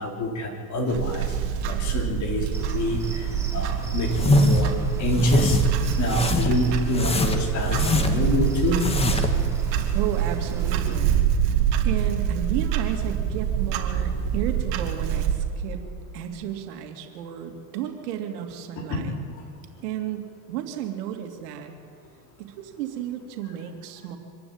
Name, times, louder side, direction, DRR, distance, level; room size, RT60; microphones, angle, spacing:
voice 1, 0.0-1.3 1.6-3.3 3.5-4.7 5.0-5.6 6.0-8.9 18.8-19.1, left 1 dB, 35° left, 1 dB, 4.1 m, -26 dB
Clock, 0.9-15.4, right 9 dB, 50° right, 2.6 m, -25 dB
sound 1, 2.5-11.0, right 2 dB, 5° right, 3.5 m, -41 dB
sound 2, 4.1-4.7 5.1-5.7 6.1-6.6 6.9-8.3 8.7-9.4, left 2 dB, 10° left, 1.4 m, -23 dB
voice 2, 9.9-11.2 11.8-15.8 16.1-19.2 19.8-21.7 22.4-24.2, right 10 dB, 70° right, 4 dB, 2.9 m, -33 dB
25.5 x 12.0 x 8.9 m, 2.2 s
supercardioid pair, 135°, 48 cm